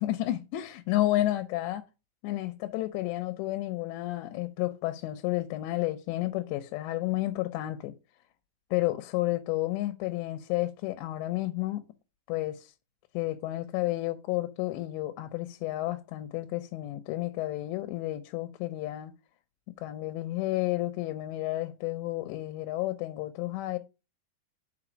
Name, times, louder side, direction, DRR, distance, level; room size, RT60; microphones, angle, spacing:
voice 1, 0.0-1.9 2.2-7.9 8.7-11.8 12.3-12.7 13.1-19.1 19.8-23.8, left 16 dB, 90° left, 3.0 m, -31 dB
6.0 x 4.7 x 6.0 m
omnidirectional pair, 4.9 m